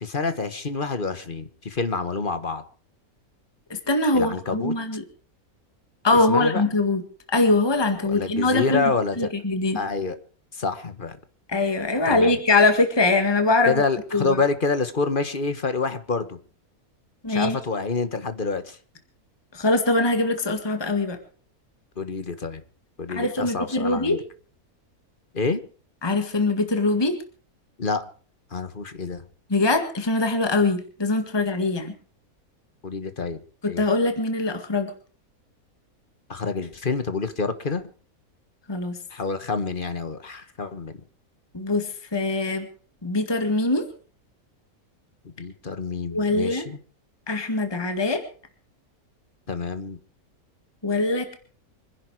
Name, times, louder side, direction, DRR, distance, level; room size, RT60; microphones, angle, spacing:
voice 1, 0.0-2.6 4.1-4.7 6.1-6.6 8.1-9.2 9.7-10.2 10.5-11.2 12.1-12.4 13.7-16.4 17.3-18.8 22.0-22.6 23.0-24.2 25.3-25.6 27.8-28.0 28.5-29.2 32.8-33.4 33.7-33.8 36.3-37.8 39.1-41.0 45.4-46.8 49.5-50.0, left 4 dB, 35° left, 1.5 m, -27 dB
voice 2, 3.9-5.0 6.0-7.0 7.3-8.9 9.2-9.8 11.5-13.7 14.1-14.4 17.2-17.6 19.5-21.2 23.2-24.2 26.0-27.2 29.5-31.9 33.6-34.9 38.7-39.0 41.5-42.7 43.0-43.9 46.1-46.6 47.3-48.2 50.8-51.3, left 2 dB, 15° left, 1.9 m, -22 dB
25.5 x 11.0 x 4.8 m
omnidirectional pair, 1.6 m